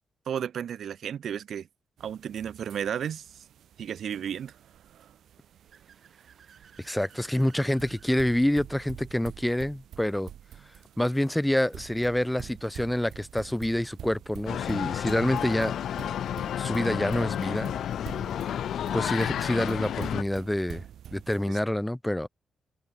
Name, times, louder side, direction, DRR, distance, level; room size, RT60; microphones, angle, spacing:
voice 1, 0.3-1.7 2.0-3.4 3.8-4.6 21.5-21.6, right 9 dB, 60° right, 0.6 m, -33 dB
sound 1, 2.0-21.5, right 10 dB, 80° right, 3.5 m, -47 dB
Car / Accelerating revving vroom, 5.1-8.3, right 6 dB, 45° right, 3.3 m, -57 dB
voice 2, 6.8-10.3 11.0-15.7 16.6-17.7 18.9-20.8 21.1-22.3, left 1 dB, 5° left, 0.5 m, -27 dB
sound 2, 14.5-20.2, left 10 dB, 75° left, 0.5 m, -31 dB
wide cardioid pair, 170°, 0 cm